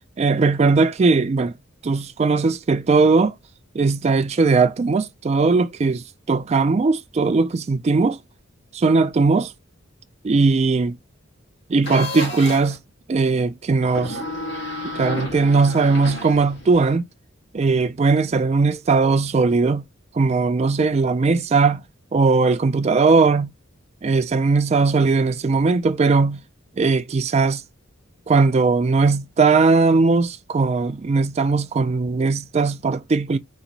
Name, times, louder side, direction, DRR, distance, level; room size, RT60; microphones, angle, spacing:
voice 1, 0.2-1.5 1.8-3.3 3.7-8.2 8.7-9.5 10.2-11.0 11.7-12.8 13.1-14.2 14.9-17.1 17.5-19.8 20.1-21.8 22.1-23.5 24.0-26.4 26.8-27.6 28.3-33.4, right 4 dB, 30° right, 0.3 m, -19 dB
sound 1, 11.8-12.8 13.8-16.9, left 1 dB, 60° left, 1.2 m, -31 dB
3.0 x 2.5 x 3.9 m
head